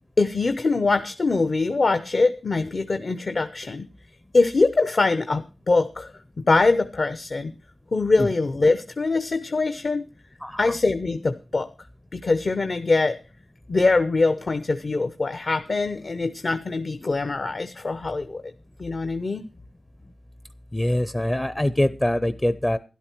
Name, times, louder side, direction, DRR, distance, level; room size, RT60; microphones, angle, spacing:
voice 1, 0.2-3.9 4.3-6.1 6.5-7.5 7.9-10.1 10.6-11.7 12.1-13.2 13.7-18.4 18.8-19.5, left 3 dB, 45° left, 10 dB, 0.8 m, -23 dB
voice 2, 10.4-10.7 20.7-22.8, left 1 dB, 15° left, 14 dB, 0.6 m, -24 dB
12.5 x 11.5 x 4.5 m, 0.32 s
wide cardioid pair, 125°, 0 cm